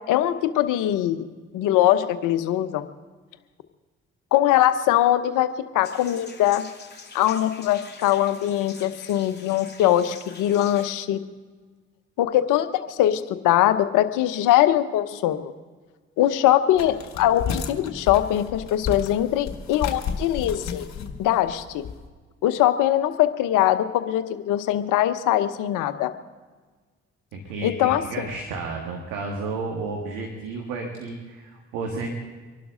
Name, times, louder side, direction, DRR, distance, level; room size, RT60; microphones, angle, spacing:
voice 1, 0.1-1.2 1.5-2.9 4.3-6.7 7.1-11.2 12.2-15.5 16.2-20.9 21.2-21.8 22.4-26.1 27.6-28.0, left 12 dB, 75° left, 11 dB, 1.0 m, -22 dB
sound 1, 5.8-10.9, left 4 dB, 30° left, 3.0 m, -44 dB
sound 2, 16.7-22.0, left 6 dB, 60° left, 1.8 m, -32 dB
voice 2, 27.3-32.1, right 3 dB, 80° right, 1 dB, 1.8 m, -32 dB
25.0 x 12.0 x 3.8 m, 1.4 s
hypercardioid pair, 40°, 32 cm